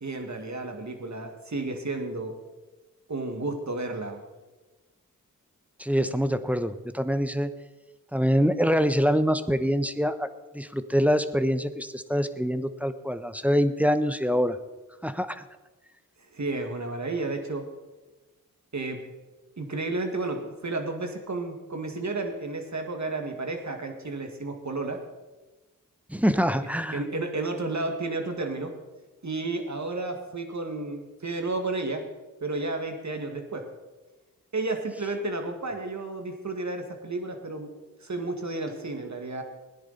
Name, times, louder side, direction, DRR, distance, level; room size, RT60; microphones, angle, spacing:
voice 1, 0.0-2.4 3.1-4.2 16.3-17.7 18.7-19.0 19.6-25.0 26.4-28.8 29.2-32.1 32.4-33.7 34.5-37.7 38.0-39.4, right 2 dB, 50° right, 4 dB, 2.0 m, -32 dB
voice 2, 5.8-7.5 8.1-10.3 10.5-14.6 15.0-15.4 26.1-27.0, equal, 5° right, 10 dB, 0.9 m, -25 dB
16.5 x 10.5 x 4.2 m, 1.2 s
cardioid pair, 40°, 35 cm